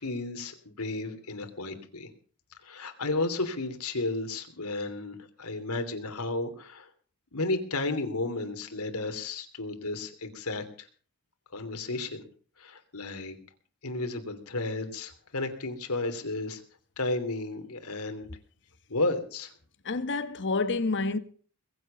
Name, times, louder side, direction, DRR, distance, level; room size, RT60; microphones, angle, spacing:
voice 1, 0.0-2.1 2.6-6.9 7.3-10.9 11.5-12.2 12.6-13.4 13.8-16.6 17.0-18.3 18.9-19.5, left 2 dB, 75° left, 3.0 m, -33 dB
voice 2, 19.8-21.2, left 3 dB, 55° left, 1.3 m, -28 dB
22.0 x 8.1 x 7.0 m
head